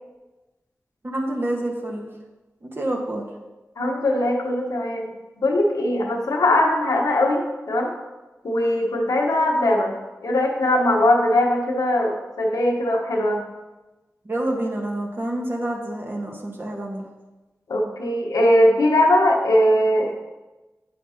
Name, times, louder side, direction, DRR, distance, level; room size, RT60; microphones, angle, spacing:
voice 1, 1.0-2.1 2.6-3.3 14.2-17.1, right 1 dB, 40° right, 0 dB, 1.3 m, -28 dB
voice 2, 3.8-5.1 5.4-7.9 8.4-9.9 10.2-13.4 17.7-20.2, left 1 dB, 85° left, 0 dB, 1.1 m, -20 dB
8.0 x 5.8 x 2.8 m, 1.1 s
cardioid pair, 40°, 6 cm